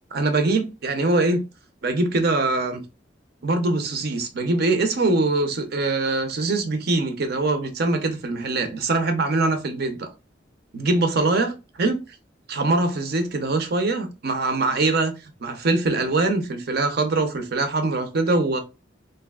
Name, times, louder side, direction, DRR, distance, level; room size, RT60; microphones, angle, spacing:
voice 1, 0.1-1.4 1.8-2.8 3.4-10.1 10.7-12.0 12.5-15.1 15.4-18.6, right 2 dB, 60° right, 0.6 m, -23 dB
3.4 x 2.7 x 2.3 m
head